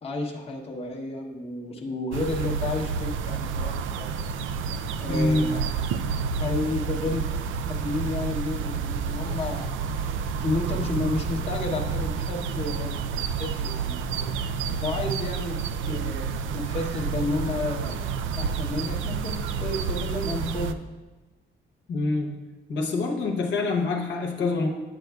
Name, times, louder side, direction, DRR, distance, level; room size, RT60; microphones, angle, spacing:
voice 1, 0.0-4.1 5.0-5.7 6.4-7.2 7.8-14.4 14.8-16.3 16.5-18.0 18.4-21.0, left 2 dB, 30° left, -1 dB, 0.9 m, -31 dB
sound 1, 2.1-20.7, right 6 dB, 75° right, 0.4 m, -29 dB
voice 2, 5.1-5.5 15.9-16.0 21.9-22.3 22.7-24.7, left 3 dB, 65° left, 0 dB, 1.0 m, -25 dB
9.0 x 7.7 x 2.3 m, 1.2 s
cardioid pair, 90°, 20 cm